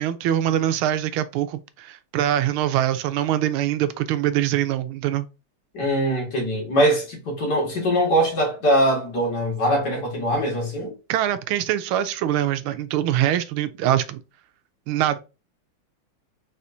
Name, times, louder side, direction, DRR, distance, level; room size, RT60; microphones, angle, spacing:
voice 1, 0.0-5.3 11.1-14.2 14.9-15.2, right 11 dB, 85° right, 1.4 m, -23 dB
voice 2, 5.7-10.9, equal, 55° left, 2.2 m, -22 dB
4.3 x 4.0 x 2.6 m
omnidirectional pair, 2.3 m